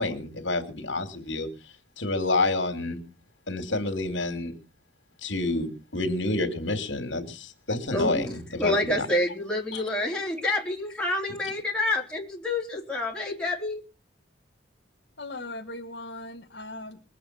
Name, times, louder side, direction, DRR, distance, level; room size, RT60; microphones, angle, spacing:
voice 1, 0.0-1.5 2.0-3.0 3.5-4.5 5.2-9.1 9.7-9.8, left 2 dB, 85° left, 7 dB, 3.0 m, -28 dB
voice 2, 7.9-8.2 8.6-13.8, left 1 dB, 5° left, -2 dB, 3.8 m, -28 dB
voice 3, 15.2-17.2, left 2 dB, 65° left, 2 dB, 1.8 m, -39 dB
22.0 x 8.6 x 6.2 m, 0.34 s
head